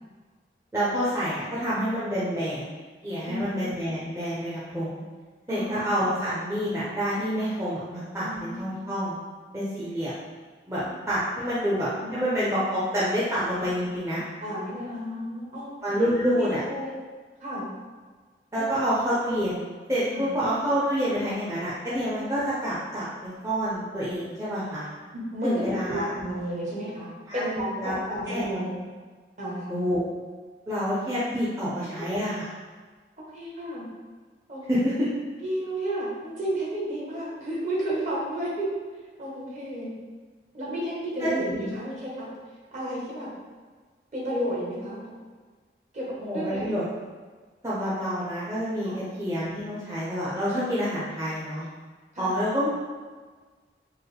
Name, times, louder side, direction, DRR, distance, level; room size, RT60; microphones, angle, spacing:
voice 1, 0.7-2.7 3.0-5.0 5.5-9.1 9.5-10.1 10.7-14.2 15.8-16.6 18.5-19.6 19.9-24.9 25.4-26.1 27.3-27.5 27.8-27.9 28.3-28.5 29.7-30.0 30.7-32.5 34.7-34.9 41.2-41.7 46.2-46.8 47.6-51.6 52.2-52.7, equal, 15° right, -10 dB, 0.5 m, -28 dB
voice 2, 8.2-8.6 12.0-12.3 13.6-13.7 14.4-16.1 16.4-16.9 17.4-17.6 18.5-18.8 20.1-20.3 25.1-28.7 29.4-29.9 31.8-32.1 33.3-33.8 34.5-34.9 35.4-38.7 39.2-39.9 40.5-42.3 42.7-43.3 44.1-45.1 45.9-46.1 46.3-46.6 48.8-49.0 52.1-52.4, equal, 40° right, -6 dB, 1.1 m, -32 dB
4.5 x 2.1 x 3.3 m, 1.4 s
head